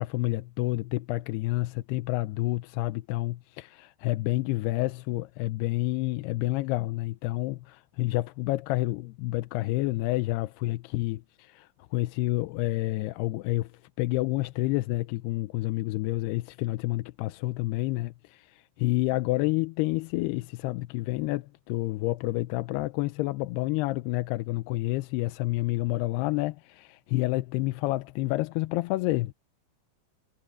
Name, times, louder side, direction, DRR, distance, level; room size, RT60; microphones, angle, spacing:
voice 1, 0.0-13.7 14.0-29.3, left 19 dB, 85° left, 2.6 m, -29 dB
omnidirectional pair, 4.6 m